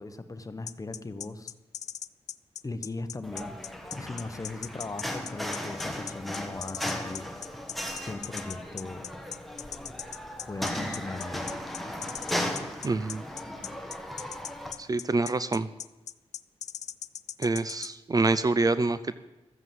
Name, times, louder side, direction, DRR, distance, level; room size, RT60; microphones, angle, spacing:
voice 1, 0.0-1.5 2.6-3.6 3.9-7.3 8.0-9.1 10.5-11.5, left 2 dB, 30° left, 10 dB, 1.1 m, -38 dB
sound 1, 0.7-17.9, left 10 dB, 85° left, 0.4 m, -39 dB
sound 2, 3.2-14.7, left 1 dB, ahead, 1.7 m, -36 dB
voice 2, 12.8-13.2 14.8-15.7 17.4-19.2, right 3 dB, 35° right, 14 dB, 0.5 m, -26 dB
13.5 x 8.0 x 7.7 m, 1.1 s
cardioid pair, 85°, 12 cm